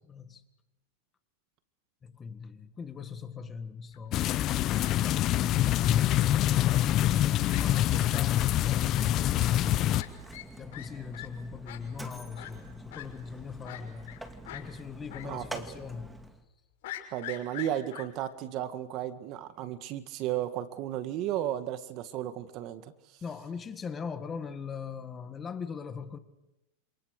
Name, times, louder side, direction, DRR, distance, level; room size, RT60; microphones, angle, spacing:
voice 1, 0.1-0.4 2.0-6.2 7.5-10.0 10.6-14.2 14.5-16.1 23.2-26.2, left 6 dB, 20° left, 1.8 m, -41 dB
Fowl, 3.9-4.3 4.8-5.0 5.8-6.3 6.7-6.8 7.1-7.2 7.5-7.6 8.1-8.2 8.9-9.0 9.9-10.1 10.3-10.5 10.7-10.9 11.1-11.3 11.7-11.8 12.4-12.5 12.9-13.0 13.6-14.2 14.5-14.6 15.1-15.3 15.6-15.7 16.8-18.0, left 15 dB, 65° left, 5.9 m, -42 dB
sound 1, 4.1-10.0, left 13 dB, 35° left, 0.8 m, -25 dB
Mechanisms, 5.7-16.4, right 1 dB, 5° right, 2.0 m, -47 dB
voice 2, 15.2-15.8 17.1-22.9, right 12 dB, 40° right, 1.9 m, -34 dB
28.0 x 27.0 x 6.6 m
supercardioid pair, 145°, 0 cm